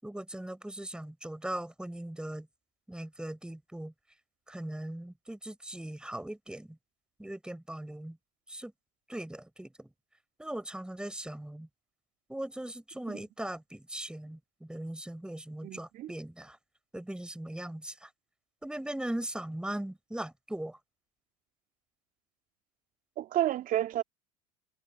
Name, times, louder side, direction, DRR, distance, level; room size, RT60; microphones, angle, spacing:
voice 1, 0.0-2.5 2.9-3.9 4.5-6.8 7.2-8.2 8.5-8.7 9.1-9.9 10.4-11.7 12.3-16.6 16.9-18.1 18.6-20.8, right 1 dB, 5° right, 6.3 m, -39 dB
voice 2, 15.6-16.1 23.2-24.0, right 13 dB, 50° right, 2.9 m, -30 dB
hypercardioid pair, 75°, 18 cm